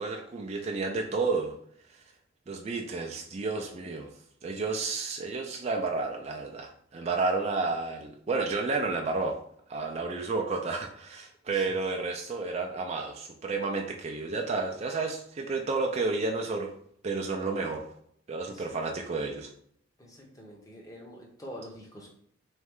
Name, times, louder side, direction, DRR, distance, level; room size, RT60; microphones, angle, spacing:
voice 1, 0.0-1.5 2.5-4.1 4.4-9.4 9.7-16.7 17.0-17.9 18.3-19.5, right 3 dB, 30° right, 1 dB, 0.3 m, -31 dB
voice 2, 20.0-22.1, equal, 15° left, 0 dB, 0.8 m, -46 dB
3.5 x 3.1 x 3.6 m, 0.65 s
head